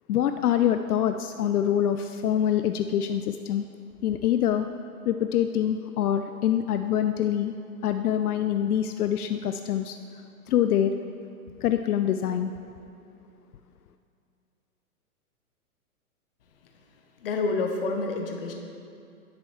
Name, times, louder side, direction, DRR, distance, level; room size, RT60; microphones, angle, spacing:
voice 1, 0.1-3.7 4.0-4.7 5.1-7.5 7.8-10.0 10.5-10.9 11.6-12.5, left 10 dB, 75° left, 8 dB, 0.5 m, -25 dB
voice 2, 17.2-18.5, left 3 dB, 40° left, 2 dB, 0.9 m, -28 dB
10.0 x 7.8 x 3.2 m, 2.6 s
hypercardioid pair, 165°, 45 cm